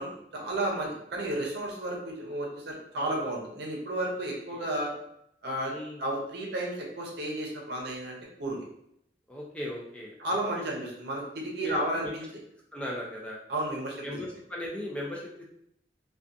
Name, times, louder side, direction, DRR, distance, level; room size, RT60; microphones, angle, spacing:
voice 1, 0.0-4.9 5.4-8.6 10.2-12.2 13.5-14.2, right 1 dB, 65° right, -1 dB, 0.7 m, -33 dB
voice 2, 9.3-10.2 10.5-10.6 11.6-12.1 12.7-13.4 14.0-15.4, left 1 dB, 5° left, -3 dB, 0.3 m, -38 dB
2.4 x 2.3 x 2.5 m, 0.73 s
head